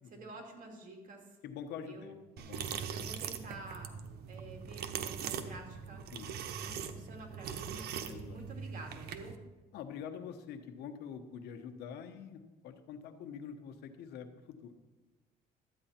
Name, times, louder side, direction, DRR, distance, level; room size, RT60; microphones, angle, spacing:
voice 1, 0.0-1.4 1.8-2.2 2.9-3.9 4.3-6.0 6.5-9.4, right 2 dB, 50° right, 2 dB, 2.5 m, -49 dB
voice 2, 1.4-2.7 6.1-6.3 8.1-8.4 9.7-14.7, left 7 dB, 80° left, 7 dB, 1.1 m, -45 dB
sound 1, 2.4-9.4, right 7 dB, 70° right, 0.9 m, -41 dB
12.5 x 9.0 x 4.4 m, 1.2 s
cardioid pair, 110°, 17 cm